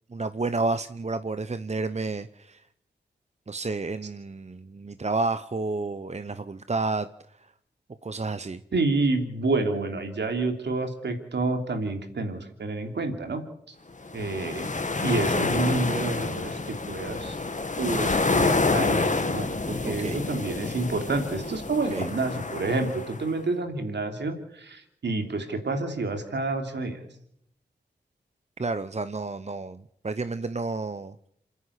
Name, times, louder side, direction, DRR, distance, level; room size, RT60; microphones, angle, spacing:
voice 1, 0.1-2.7 3.5-7.5 8.0-8.6 19.8-20.2 21.9-22.1 28.6-31.2, right 3 dB, 40° right, 11 dB, 1.0 m, -31 dB
voice 2, 8.7-13.4 13.7-13.8 14.1-14.7 15.0-17.4 17.8-27.0, right 3 dB, 80° right, 5 dB, 3.1 m, -29 dB
sound 1, 14.0-23.3, left 3 dB, 45° left, 1.7 m, -28 dB
27.5 x 10.0 x 9.9 m, 0.73 s
cardioid pair, 40°, 18 cm